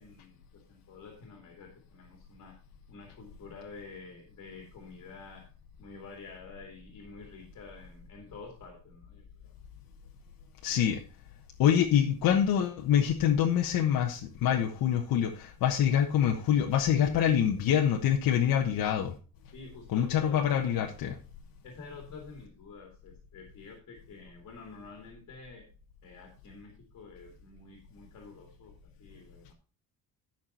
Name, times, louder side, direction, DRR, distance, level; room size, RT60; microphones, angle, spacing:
voice 1, 0.0-2.5 2.9-5.5 5.8-9.2 19.5-20.8 21.6-25.7 26.0-28.7 29.0-29.5, left 4 dB, 50° left, 2 dB, 2.7 m, -49 dB
voice 2, 10.6-11.0 11.6-19.2 19.9-21.2, left 9 dB, 70° left, 1 dB, 1.3 m, -25 dB
12.0 x 6.0 x 4.3 m, 0.36 s
cardioid pair, 135°, 36 cm